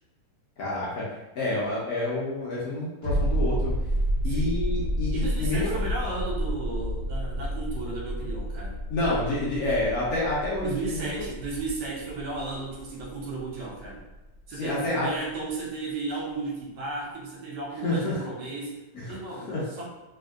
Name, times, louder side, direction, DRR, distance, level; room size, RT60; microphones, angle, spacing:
voice 1, 0.6-1.0 1.3-3.7 4.2-5.8 8.9-11.1 14.6-15.1 17.8-18.2 18.9-19.0 19.5-19.6, left 2 dB, 70° left, -6 dB, 1.2 m, -28 dB
sound 1, 3.0-14.4 14.7-14.8, equal, 65° right, 1.4 m, -30 dB
voice 2, 4.2-4.6 5.1-8.8 10.6-14.1 14.5-18.8 19.1-19.9, right 3 dB, 90° right, -2 dB, 1.3 m, -34 dB
3.4 x 2.6 x 2.4 m, 1.1 s
omnidirectional pair, 1.8 m